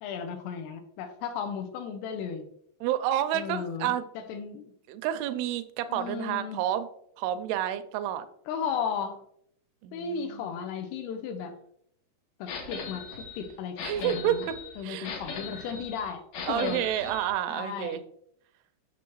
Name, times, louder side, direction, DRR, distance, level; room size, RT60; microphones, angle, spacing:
voice 1, 0.0-2.5 3.3-4.6 5.9-6.6 8.5-9.2 9.9-11.5 12.4-14.5 14.8-16.2 16.5-16.8 17.5-18.0, left 6 dB, 80° left, 7 dB, 2.6 m, -35 dB
voice 2, 2.8-4.1 4.9-6.9 7.2-8.3 9.8-10.5 13.8-14.4 14.8-15.1 16.5-18.0, right 11 dB, 80° right, 11 dB, 2.4 m, -29 dB
sound 1, 12.5-17.3, left 5 dB, 65° left, 2.4 m, -39 dB
7.0 x 6.1 x 3.0 m, 0.69 s
omnidirectional pair, 4.8 m